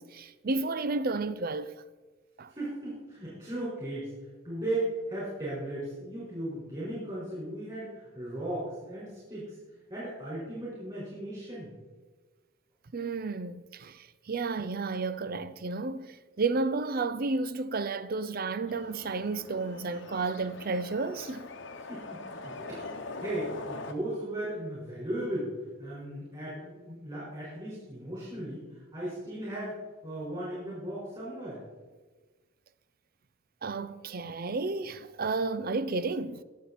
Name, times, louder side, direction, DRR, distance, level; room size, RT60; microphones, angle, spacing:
voice 1, 0.0-1.8 2.4-2.5 12.9-21.5 33.6-36.4, right 3 dB, 45° right, 0.5 m, -32 dB
voice 2, 2.5-4.1 4.4-9.6 9.9-11.7 21.9-25.5 25.8-29.8 30.0-31.6, right 1 dB, 25° right, 4.9 m, -36 dB
sound 1, 18.7-23.9, left 3 dB, 65° left, 1.0 m, -42 dB
21.0 x 7.1 x 4.2 m
head